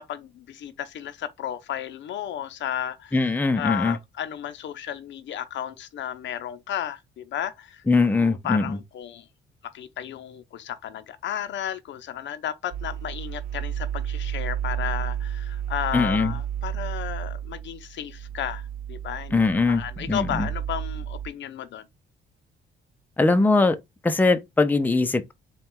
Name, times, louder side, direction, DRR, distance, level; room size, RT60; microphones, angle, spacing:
voice 1, 0.0-7.8 8.1-9.3 9.6-19.4 19.6-21.9, left 10 dB, 70° left, 0.6 m, -33 dB
voice 2, 3.1-4.0 7.9-8.8 15.9-16.3 19.3-19.8 20.1-20.5 23.2-23.8 24.0-25.3, left 3 dB, 10° left, 0.5 m, -21 dB
sound 1, 12.7-21.3, right 10 dB, 45° right, 0.4 m, -32 dB
3.9 x 2.3 x 3.6 m
cardioid pair, 90°, 20 cm